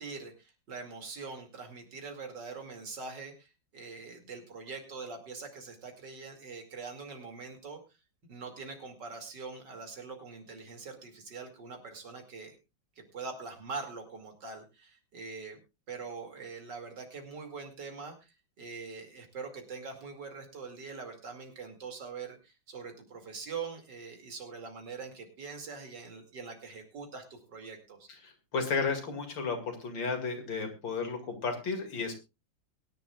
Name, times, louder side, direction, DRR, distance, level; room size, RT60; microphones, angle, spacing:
voice 1, 0.0-7.8 8.3-12.6 13.0-15.6 15.9-28.1, right 4 dB, 65° right, 4 dB, 3.1 m, -43 dB
voice 2, 28.2-32.1, left 4 dB, 85° left, 5 dB, 3.0 m, -33 dB
22.5 x 10.5 x 2.4 m, 0.26 s
omnidirectional pair, 2.0 m